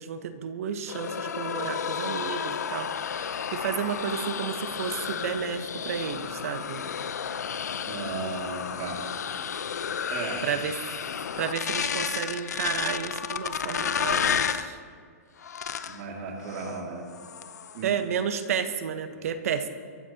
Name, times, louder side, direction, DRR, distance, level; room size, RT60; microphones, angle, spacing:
voice 1, 0.0-2.9 3.5-6.8 10.4-10.7 11.4-14.8 17.8-19.7, right 7 dB, 60° right, 8 dB, 1.3 m, -31 dB
sound 1, 0.9-14.7 15.4-16.0 16.5-16.8 17.1-17.8, left 7 dB, 90° left, 0.8 m, -32 dB
voice 2, 7.8-10.5 15.9-17.0 17.7-17.9 19.1-19.2, right 3 dB, 40° right, -1 dB, 2.5 m, -36 dB
23.0 x 14.0 x 3.0 m, 2.1 s
hypercardioid pair, 155°, 9 cm